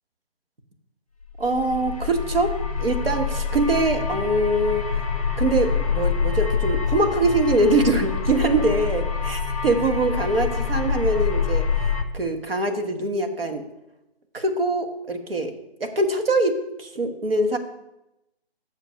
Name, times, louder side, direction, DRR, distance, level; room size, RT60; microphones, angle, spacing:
sound 1, 1.4-12.0, left 6 dB, 35° left, 0.7 m, -26 dB
voice 1, 1.4-4.9 5.4-11.6 12.1-13.6 14.3-15.5 15.8-17.6, right 2 dB, 60° right, 6 dB, 1.3 m, -23 dB
6.5 x 5.1 x 6.3 m, 0.90 s
hypercardioid pair, 175°, 32 cm